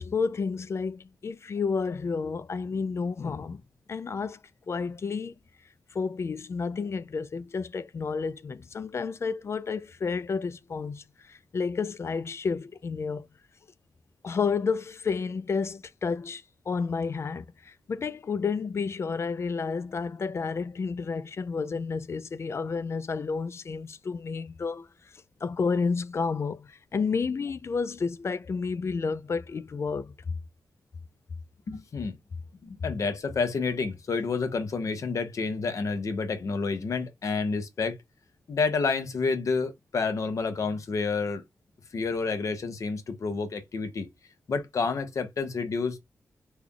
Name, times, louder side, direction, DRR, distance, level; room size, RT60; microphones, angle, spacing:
voice 1, 0.0-3.6 3.9-4.4 4.7-5.3 5.9-13.3 14.2-24.9 25.4-30.4, left 5 dB, 50° left, 0.4 m, -31 dB
voice 2, 31.7-32.2 32.6-38.0 38.5-41.4 41.9-44.1 44.5-46.0, left 4 dB, 70° left, 0.9 m, -29 dB
3.3 x 2.3 x 3.7 m
cardioid pair, 60°, 6 cm